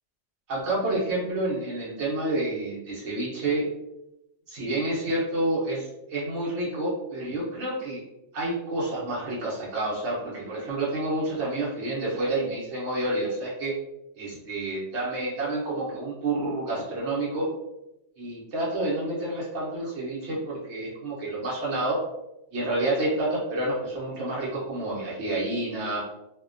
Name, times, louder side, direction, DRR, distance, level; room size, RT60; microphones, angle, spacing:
voice 1, 0.5-3.7 4.5-8.0 8.3-13.7 14.1-17.5 18.2-22.0 22.5-26.0, right 2 dB, 75° right, -5 dB, 1.0 m, -29 dB
2.5 x 2.1 x 2.4 m, 0.89 s
omnidirectional pair, 1.2 m